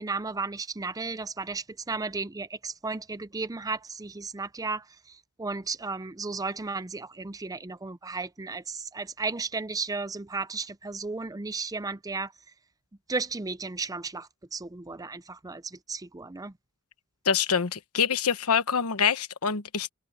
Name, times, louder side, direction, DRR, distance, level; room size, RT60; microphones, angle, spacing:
voice 1, 0.0-12.3 13.1-16.5, right 4 dB, 15° right, 0.5 m, -34 dB
voice 2, 17.2-19.9, left 7 dB, 85° left, 1.1 m, -25 dB
head